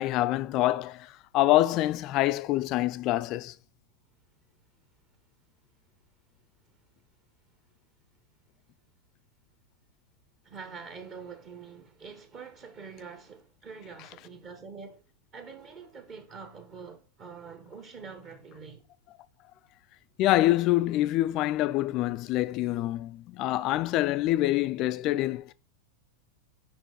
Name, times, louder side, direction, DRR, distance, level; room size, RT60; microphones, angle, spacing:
voice 1, 0.0-3.5 20.2-25.5, left 16 dB, 40° left, 0.4 m, -26 dB
voice 2, 10.4-15.0 15.3-18.8, right 5 dB, 30° right, 1.0 m, -45 dB
5.3 x 4.5 x 4.5 m
figure-of-eight pair, 90°, 0 cm